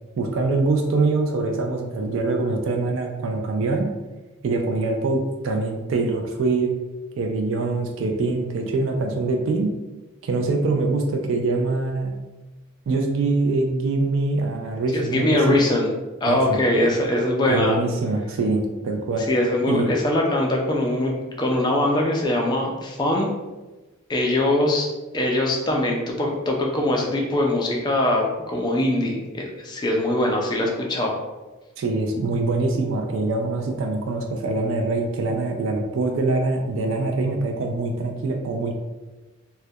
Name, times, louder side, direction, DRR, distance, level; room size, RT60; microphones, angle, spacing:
voice 1, 0.2-3.9 4.4-6.7 7.2-9.7 10.2-12.1 12.9-15.6 16.3-16.6 17.5-19.3 19.7-19.9 31.8-38.7, right 3 dB, 65° right, 3 dB, 0.3 m, -24 dB
voice 2, 14.9-15.9 16.2-17.8 19.3-23.3 24.1-24.9 25.1-31.2, left 1 dB, 20° left, 0 dB, 0.3 m, -22 dB
2.2 x 2.1 x 2.7 m, 1.1 s
head